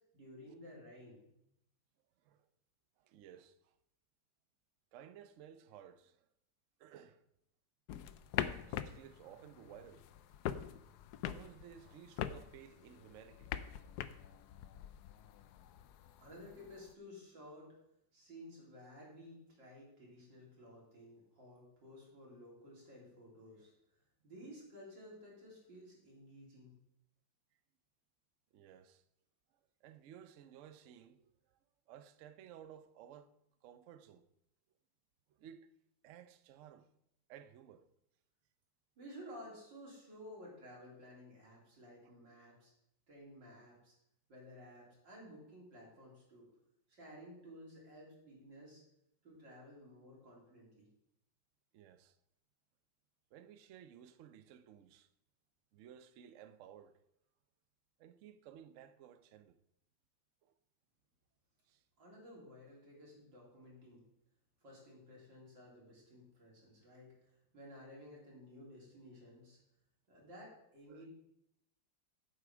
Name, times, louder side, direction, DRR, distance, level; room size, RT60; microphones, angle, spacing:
voice 1, 0.1-1.3 16.2-17.7 18.1-23.7 24.2-26.7 39.0-42.7 43.1-43.9 44.3-46.5 47.0-48.8 49.2-50.9 62.0-64.0 64.6-69.6 70.1-71.1, equal, 70° right, 4.0 m, -54 dB
voice 2, 3.0-3.7 4.9-6.2 6.8-7.2 8.7-10.1 11.3-13.5 28.5-29.0 29.8-31.6 31.9-33.3 33.6-34.3 35.4-35.7 36.0-36.9 37.3-37.9 42.0-42.1 51.7-52.2 53.3-55.1 55.7-57.0 58.0-59.6 60.4-60.5 61.7-61.8 70.9-71.1, right 9 dB, 90° right, 0.6 m, -56 dB
sound 1, 7.9-16.9, left 10 dB, 75° left, 0.9 m, -44 dB
8.3 x 7.8 x 5.1 m
omnidirectional pair, 2.1 m